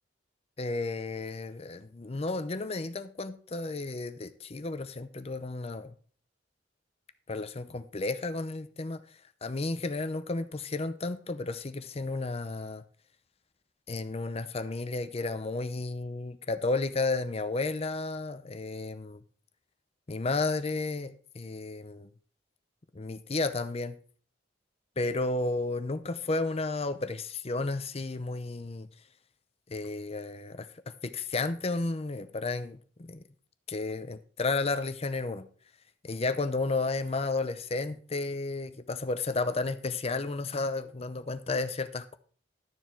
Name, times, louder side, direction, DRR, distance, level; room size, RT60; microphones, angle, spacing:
voice 1, 0.6-5.9 7.3-12.8 13.9-19.2 20.1-22.1 22.9-24.0 25.0-28.9 29.7-33.2 33.7-35.5 36.0-42.2, left 3 dB, 35° left, 0.7 m, -32 dB
12.0 x 7.1 x 4.5 m
head